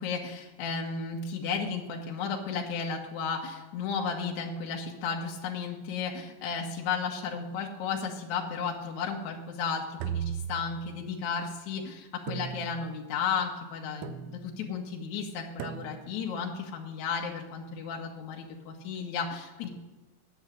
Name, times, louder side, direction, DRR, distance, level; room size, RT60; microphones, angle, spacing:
voice 1, 0.0-19.7, left 5 dB, 65° left, 0 dB, 2.1 m, -34 dB
sound 1, 10.0-11.2 12.3-13.1 14.0-14.6 15.6-16.3, right 10 dB, 85° right, 2.4 m, -38 dB
9.3 x 8.0 x 7.3 m, 1.1 s
omnidirectional pair, 4.3 m